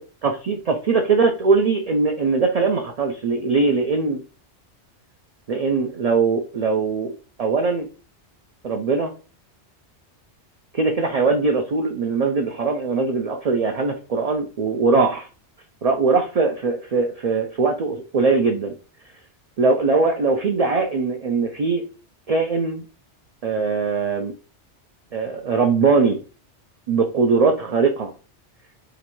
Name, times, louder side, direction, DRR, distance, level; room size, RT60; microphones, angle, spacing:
voice 1, 0.2-4.2 5.5-7.1 7.4-7.9 8.6-9.1 10.7-15.3 15.8-18.7 19.6-21.8 22.3-22.8 23.4-24.3 25.1-26.2 26.9-28.1, right 4 dB, 65° right, 4 dB, 0.4 m, -21 dB
2.9 x 2.5 x 4.3 m, 0.35 s
omnidirectional pair, 1.2 m